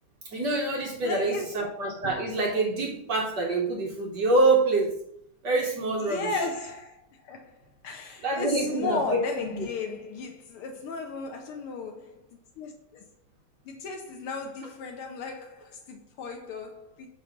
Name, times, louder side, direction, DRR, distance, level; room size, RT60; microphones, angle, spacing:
voice 1, 0.3-4.9 5.4-6.3 8.2-9.2 9.5-9.6, right 2 dB, 80° right, 0.9 m, -26 dB
voice 2, 1.0-1.5 6.0-12.2 12.6-13.0 13.6-17.1, left 4 dB, 85° left, 1.2 m, -35 dB
7.9 x 3.2 x 5.8 m
omnidirectional pair, 3.4 m